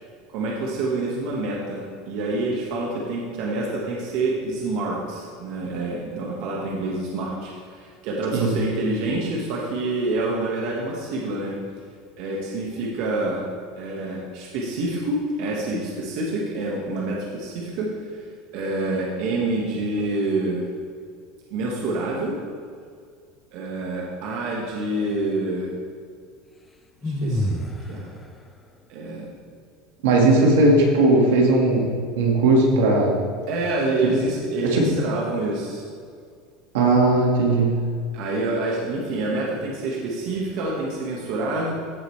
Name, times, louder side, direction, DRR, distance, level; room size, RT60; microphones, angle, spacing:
voice 1, 0.3-11.5 12.2-13.4 13.8-20.6 21.5-22.4 23.5-25.7 27.0-27.6 27.9-28.1 28.9-29.3 33.5-35.8 36.7-36.8 38.1-41.7, right 2 dB, 65° right, -3 dB, 1.5 m, -27 dB
sound 1, 27.0-27.9, equal, 15° left, 0.8 m, -25 dB
voice 2, 30.0-31.9 32.2-33.2 34.6-34.9 36.7-37.8, right 2 dB, 80° right, 0 dB, 1.8 m, -18 dB
15.0 x 5.1 x 3.2 m, 2.2 s
supercardioid pair, 110°, 0 cm